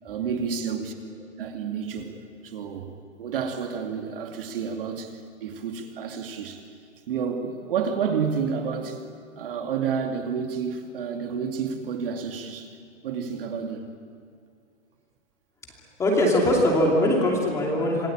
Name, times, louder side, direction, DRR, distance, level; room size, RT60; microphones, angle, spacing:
voice 1, 0.0-2.1 2.4-2.9 3.2-6.6 7.1-9.0 9.4-12.7 13.0-13.9, right 6 dB, 45° right, 4 dB, 2.5 m, -30 dB
voice 2, 16.0-18.1, left 1 dB, 10° left, -2 dB, 2.7 m, -21 dB
27.0 x 20.5 x 8.9 m, 2.2 s
hypercardioid pair, 170°, 37 cm